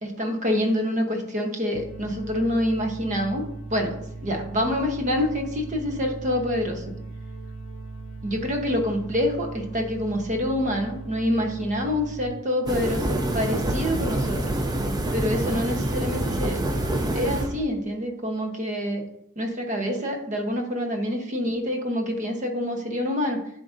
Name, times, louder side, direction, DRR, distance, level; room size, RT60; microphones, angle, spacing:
voice 1, 0.0-3.4 3.7-6.8 8.2-14.5 15.1-16.6 17.1-19.0 19.4-23.4, left 1 dB, 35° right, 3 dB, 0.9 m, -26 dB
sound 1, 1.7-12.3, right 2 dB, 60° left, 0.6 m, -38 dB
sound 2, 12.7-17.6, right 1 dB, 20° right, 0.5 m, -26 dB
11.0 x 3.8 x 2.6 m, 0.77 s
head